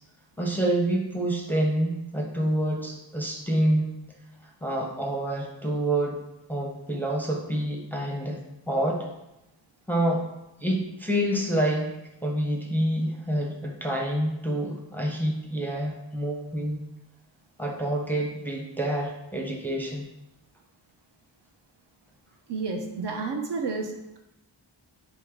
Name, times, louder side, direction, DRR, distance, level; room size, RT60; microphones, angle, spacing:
voice 1, 0.4-4.0 4.6-6.2 6.5-8.4 8.7-9.1 9.9-10.2 10.6-12.0 12.2-16.9 17.6-20.1, right 1 dB, 5° left, 0 dB, 0.5 m, -27 dB
voice 2, 22.5-24.2, right 4 dB, 60° right, 2 dB, 0.6 m, -31 dB
3.5 x 3.0 x 3.4 m, 0.91 s
wide cardioid pair, 75°, 46 cm